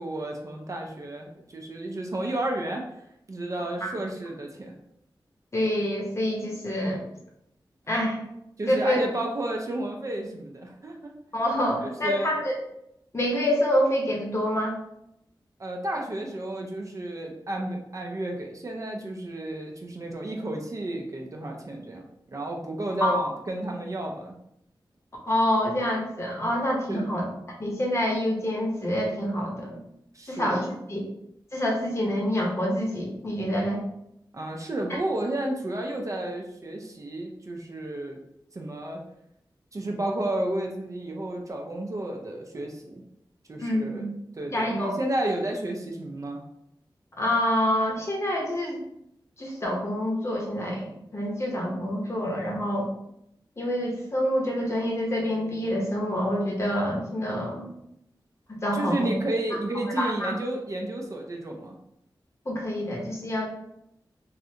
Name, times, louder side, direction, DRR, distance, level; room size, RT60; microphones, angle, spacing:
voice 1, 0.0-2.8 3.3-4.7 8.6-11.1 11.8-12.4 15.6-22.0 22.3-24.3 26.9-27.2 30.1-30.7 34.3-38.2 38.5-39.0 39.7-43.0 43.5-44.1 44.4-46.4 58.7-61.7, right 1 dB, 40° right, 1 dB, 0.5 m, -32 dB
voice 2, 5.5-7.0 7.9-8.2 8.7-9.0 11.3-12.5 13.1-14.8 23.0-23.2 25.3-27.3 27.6-29.8 30.3-31.0 31.5-33.8 43.6-44.1 44.5-45.0 47.2-48.8 49.4-52.9 53.6-57.7 58.5-59.1 60.0-60.3 62.5-63.5, equal, 35° left, -2 dB, 0.8 m, -27 dB
3.2 x 2.5 x 2.7 m, 0.78 s
wide cardioid pair, 110°, 8 cm